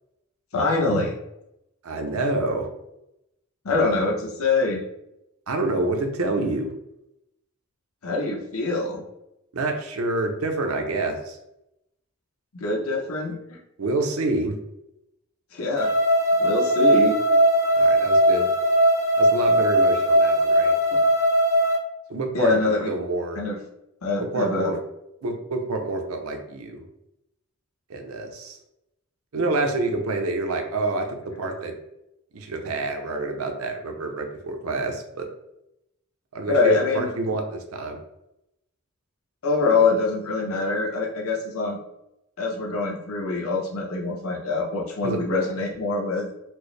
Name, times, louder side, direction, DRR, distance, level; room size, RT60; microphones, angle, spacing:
voice 1, 0.5-1.1 3.6-4.8 8.0-9.0 12.5-13.6 15.5-15.9 16.4-17.2 22.3-22.9 23.3-23.6 24.0-24.7 36.5-37.1 39.4-41.8 42.4-46.3, left 3 dB, 80° left, 0 dB, 0.8 m, -24 dB
voice 2, 1.8-2.7 5.5-6.8 9.5-11.4 13.8-14.6 17.7-18.5 19.2-20.7 22.1-22.6 22.9-23.4 24.3-24.8 25.2-26.8 27.9-28.6 29.3-31.8 32.3-35.3 36.3-38.0 45.0-45.2, right 2 dB, 85° right, 4 dB, 0.6 m, -27 dB
sound 1, 15.8-21.8, right 1 dB, 15° right, 0.4 m, -19 dB
4.4 x 2.0 x 3.2 m, 0.85 s
head